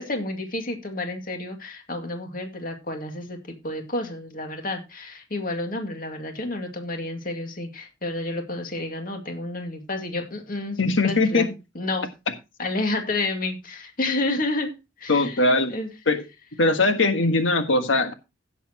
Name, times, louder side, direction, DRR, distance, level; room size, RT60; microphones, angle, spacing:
voice 1, 0.0-11.4 11.7-12.1 12.6-14.7 15.0-15.9, left 2 dB, 45° left, 4 dB, 2.2 m, -30 dB
voice 2, 10.8-11.4 15.1-15.7 16.1-16.2 16.6-18.1, left 2 dB, 85° left, 7 dB, 1.6 m, -20 dB
16.5 x 7.1 x 2.9 m, 0.26 s
head